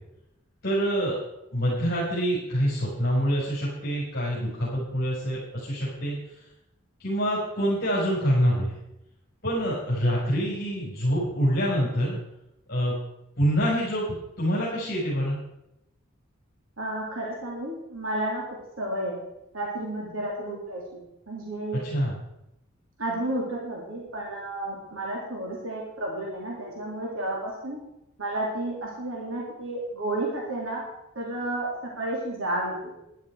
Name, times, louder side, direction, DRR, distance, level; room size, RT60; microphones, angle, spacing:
voice 1, 0.6-1.2 1.5-6.2 7.0-8.7 9.4-12.2 12.7-13.0 13.4-15.4 21.8-22.2, equal, 50° left, -8 dB, 5.4 m, -26 dB
voice 2, 16.8-18.4 18.8-19.2 19.5-21.0 21.3-21.9 23.0-27.8 28.2-30.8 31.1-31.7 32.0-32.7, right 1 dB, 75° right, -3 dB, 3.1 m, -31 dB
12.5 x 11.5 x 4.8 m, 0.86 s
head